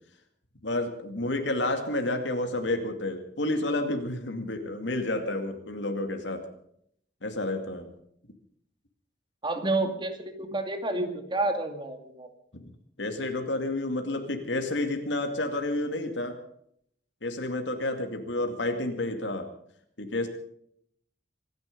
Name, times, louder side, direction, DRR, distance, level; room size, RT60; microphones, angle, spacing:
voice 1, 0.6-6.5 7.2-7.9 12.5-12.7 13.0-16.4 17.2-19.5 20.0-20.3, left 2 dB, 85° left, 5 dB, 2.3 m, -30 dB
voice 2, 9.4-12.3, right 2 dB, 25° right, 6 dB, 2.4 m, -29 dB
25.5 x 11.0 x 5.3 m, 0.69 s
head